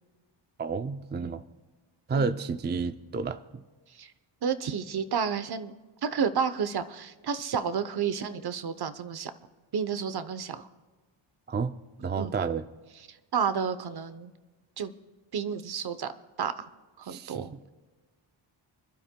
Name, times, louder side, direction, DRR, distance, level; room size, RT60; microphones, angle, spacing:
voice 1, 0.6-1.4 2.1-3.6 11.5-11.7 12.0-12.6 17.1-17.4, right 5 dB, 25° right, 10 dB, 0.4 m, -30 dB
voice 2, 4.4-5.7 6.0-9.3 9.7-10.7 12.2-12.3 13.3-14.3 14.8-14.9 15.3-16.1 16.4-16.7 17.0-17.5, right 7 dB, 50° right, 12 dB, 0.8 m, -31 dB
29.5 x 12.0 x 2.2 m, 1.3 s
wide cardioid pair, 115°, 49 cm